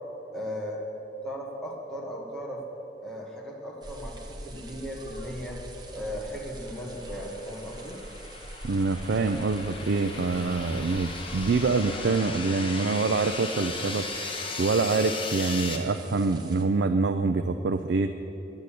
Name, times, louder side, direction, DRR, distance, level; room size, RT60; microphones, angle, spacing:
voice 1, 0.3-0.9 1.2-2.6 3.0-5.6 5.9-8.0, equal, 5° left, -3 dB, 1.4 m, -37 dB
sound 1, 3.8-16.6, right 1 dB, 25° right, 1.2 m, -44 dB
sound 2, 6.8-15.8, left 3 dB, 30° left, 1.1 m, -37 dB
voice 2, 8.6-18.3, right 3 dB, 70° right, 8 dB, 0.4 m, -26 dB
10.5 x 7.9 x 8.4 m, 3.0 s
head